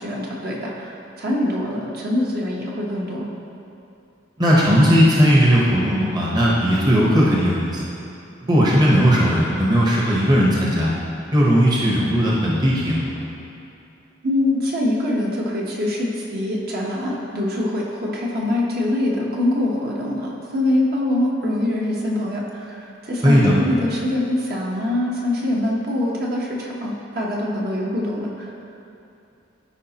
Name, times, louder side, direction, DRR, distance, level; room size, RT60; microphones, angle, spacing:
voice 1, 0.0-3.3 14.2-28.5, left 1 dB, 50° right, -4 dB, 1.1 m, -24 dB
voice 2, 4.4-7.9 8.5-10.9 11.3-13.3 23.2-23.5, equal, 20° right, -5 dB, 0.9 m, -17 dB
13.0 x 4.9 x 2.9 m, 2.7 s
head